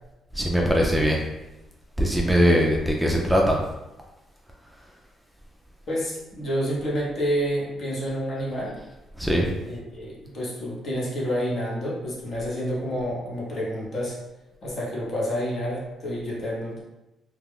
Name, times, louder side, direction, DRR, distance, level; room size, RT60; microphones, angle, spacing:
voice 1, 0.3-1.2 2.0-3.6 4.6-4.8 9.2-9.5, equal, ahead, -1 dB, 0.4 m, -21 dB
voice 2, 5.9-8.8 9.7-14.2 14.6-16.8, equal, 50° left, -5 dB, 1.0 m, -29 dB
2.4 x 2.2 x 3.4 m, 0.98 s
cardioid pair, 90°, 0 cm